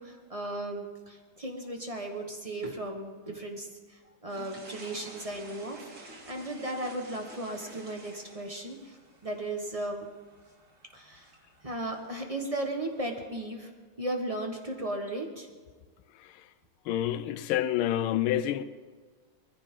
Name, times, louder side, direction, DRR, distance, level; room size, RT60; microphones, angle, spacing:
voice 1, 0.0-10.1 10.9-11.3 11.6-13.7 14.0-15.5, right 1 dB, 20° right, 1.1 m, -36 dB
sound 1, 4.3-13.3, right 2 dB, 60° right, 2.7 m, -51 dB
voice 2, 16.9-18.6, left 12 dB, 85° left, 1.5 m, -28 dB
21.0 x 14.5 x 3.7 m
omnidirectional pair, 2.3 m